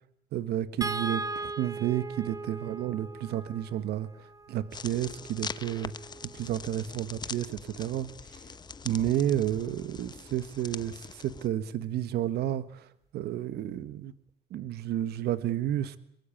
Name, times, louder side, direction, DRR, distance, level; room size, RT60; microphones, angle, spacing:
voice 1, 0.3-8.4 8.8-14.1 14.5-16.0, right 12 dB, 75° right, 14 dB, 1.5 m, -31 dB
sound 1, 0.8-7.1 8.7-8.8 9.2-9.3, right 3 dB, 20° right, 1.7 m, -40 dB
sound 2, 4.7-11.5, left 5 dB, 25° left, 0.9 m, -42 dB
23.0 x 22.0 x 8.7 m, 0.71 s
cardioid pair, 110°, 17 cm